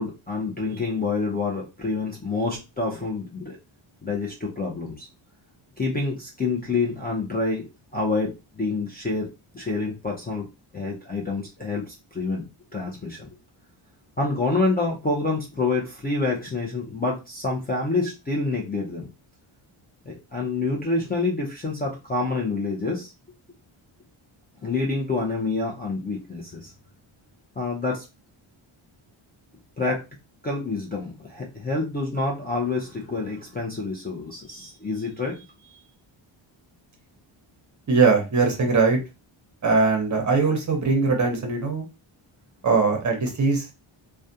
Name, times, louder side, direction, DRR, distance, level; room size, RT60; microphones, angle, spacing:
voice 1, 0.0-3.6 4.0-5.1 5.8-9.3 9.5-10.5 10.7-12.5 12.7-13.3 14.2-19.1 20.1-23.1 24.6-26.7 27.6-28.0 29.8-30.0 30.4-35.5 35.7-35.8, left 3 dB, 20° left, -2 dB, 0.4 m, -27 dB
voice 2, 37.9-39.0 39.6-41.8 42.6-43.7, right 4 dB, 35° right, 3 dB, 0.7 m, -21 dB
2.3 x 2.2 x 2.6 m, 0.27 s
wide cardioid pair, 135°, 50 cm